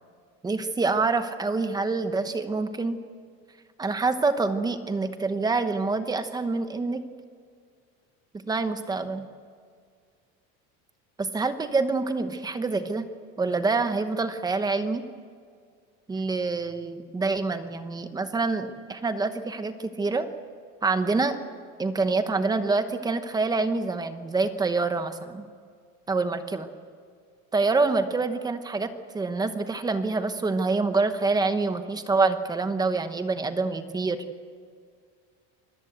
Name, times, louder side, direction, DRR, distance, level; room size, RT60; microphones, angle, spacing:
voice 1, 0.4-3.0 3.8-7.0 8.5-9.3 11.2-13.1 13.4-15.0 16.1-20.3 20.8-21.4 21.8-25.5 26.1-26.7 27.5-34.2, right 3 dB, 10° right, 9 dB, 1.0 m, -26 dB
26.0 x 19.0 x 8.1 m, 2.1 s
cardioid pair, 175°, 35 cm